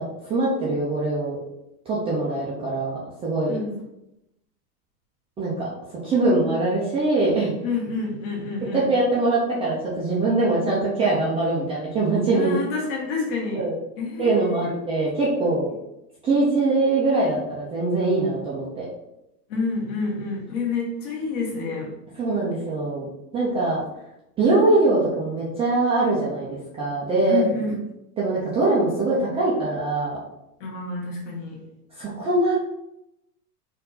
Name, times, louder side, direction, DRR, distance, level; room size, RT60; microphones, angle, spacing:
voice 1, 0.2-1.4 1.9-3.6 5.4-5.7 6.0-7.5 8.6-12.6 13.6-13.7 14.2-15.7 16.2-18.8 22.2-23.1 23.3-23.8 24.4-27.4 28.2-30.2 32.0-32.6, right 2 dB, 15° right, -7 dB, 0.5 m, -22 dB
voice 2, 3.5-3.8 7.6-8.9 12.3-13.7 14.0-14.7 19.5-21.9 27.3-27.8 30.6-31.6, left 4 dB, 45° left, -2 dB, 1.6 m, -28 dB
4.4 x 2.7 x 3.9 m, 0.87 s
supercardioid pair, 145°, 48 cm